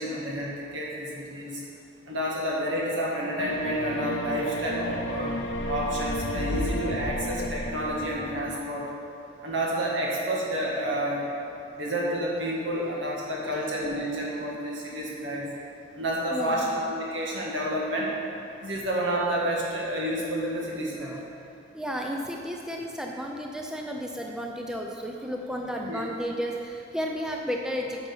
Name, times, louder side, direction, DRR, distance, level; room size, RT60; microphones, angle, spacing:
voice 1, 0.0-1.6 2.1-5.4 5.7-8.9 9.4-11.2 11.7-15.5 15.9-18.1 18.6-21.1 25.9-26.0, equal, 75° right, -4 dB, 1.9 m, -29 dB
sound 1, 3.4-8.5, left 1 dB, 75° left, 0.7 m, -32 dB
voice 2, 16.3-16.8 21.0-21.5 21.7-28.1, equal, 5° right, 0 dB, 0.5 m, -33 dB
9.2 x 6.0 x 5.6 m, 2.7 s
head